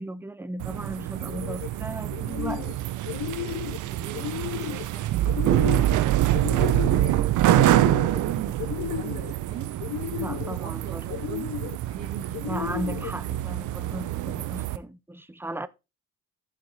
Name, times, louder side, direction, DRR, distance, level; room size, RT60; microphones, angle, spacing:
voice 1, 0.0-2.6 10.2-11.1 12.4-15.7, right 1 dB, 5° right, 0.6 m, -36 dB
sound 1, 0.6-14.8, right 14 dB, 80° right, 0.6 m, -26 dB
sound 2, 1.2-1.7 2.1-2.8 3.0-3.8 4.1-4.9 5.3-6.0 6.3-7.1 7.5-8.2 8.6-9.3 9.8-10.6 11.1-11.8 12.3-13.1, left 14 dB, 75° left, 0.5 m, -33 dB
voice 2, 3.4-11.6 11.8-12.5, right 7 dB, 60° right, 2.5 m, -42 dB
10.0 x 5.1 x 3.9 m
cardioid pair, 90°, 30 cm